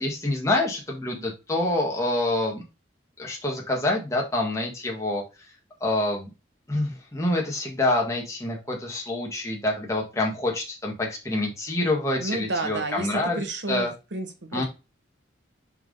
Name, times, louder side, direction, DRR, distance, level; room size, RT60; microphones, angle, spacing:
voice 1, 0.0-2.6 3.2-5.2 5.8-6.3 6.7-13.4 13.7-13.9 14.5-14.6, left 2 dB, 15° left, -1 dB, 1.5 m, -26 dB
voice 2, 12.2-14.6, right 2 dB, 65° right, 5 dB, 1.4 m, -31 dB
5.5 x 4.6 x 3.8 m, 0.28 s
head